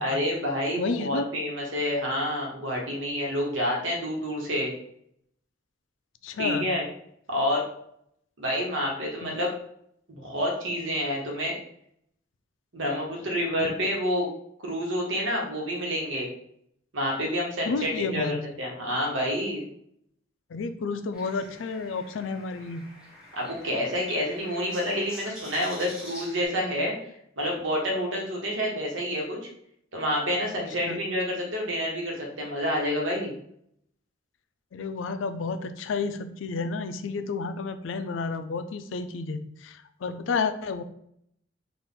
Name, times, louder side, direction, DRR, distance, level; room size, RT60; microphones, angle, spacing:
voice 1, 0.0-4.7 6.4-6.8 7.3-7.7 8.4-9.5 10.1-11.6 12.7-14.3 14.6-16.3 16.9-19.6 23.3-27.0 27.4-29.5 29.9-33.3, equal, 85° right, -1 dB, 1.3 m, -28 dB
voice 2, 0.8-1.2 6.2-6.7 9.2-9.4 17.7-18.5 20.5-22.9 30.9-31.0 34.7-40.8, left 4 dB, 85° left, 10 dB, 0.4 m, -31 dB
sound 1, 21.1-26.5, equal, 5° right, 1.2 m, -44 dB
4.1 x 2.5 x 3.8 m, 0.71 s
head